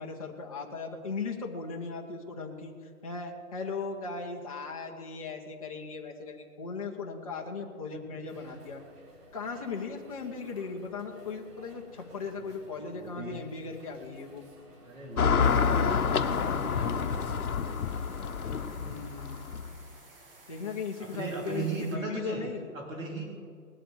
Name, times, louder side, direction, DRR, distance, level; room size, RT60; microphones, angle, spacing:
voice 1, 0.0-8.8 9.3-14.4 18.8-19.5 20.5-22.7, left 4 dB, 25° left, -1 dB, 0.9 m, -38 dB
voice 2, 8.1-8.4 12.4-12.5 12.7-13.4 14.8-19.2 21.0-22.4 22.7-23.3, right 2 dB, 55° right, -1 dB, 3.4 m, -39 dB
sound 1, 8.3-17.4, right 1 dB, 85° right, 4.2 m, -54 dB
Car passing by / Traffic noise roadway noise, 15.2-19.8, left 6 dB, 65° left, 1.1 m, -28 dB
sound 2, 15.4-22.0, right 2 dB, 35° right, 2.2 m, -55 dB
19.5 x 7.7 x 7.8 m, 2.2 s
hypercardioid pair, 170°, 46 cm